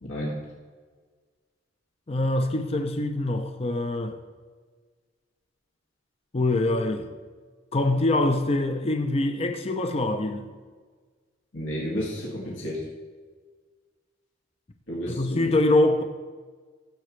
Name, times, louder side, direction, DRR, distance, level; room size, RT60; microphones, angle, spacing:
voice 1, 0.0-0.4 11.5-12.8 14.9-15.5, equal, 80° left, 2.2 m, -31 dB
voice 2, 2.1-4.2 6.3-7.1 7.7-10.5 15.1-16.0, left 2 dB, 30° left, 0.6 m, -24 dB
15.0 x 7.6 x 3.2 m
head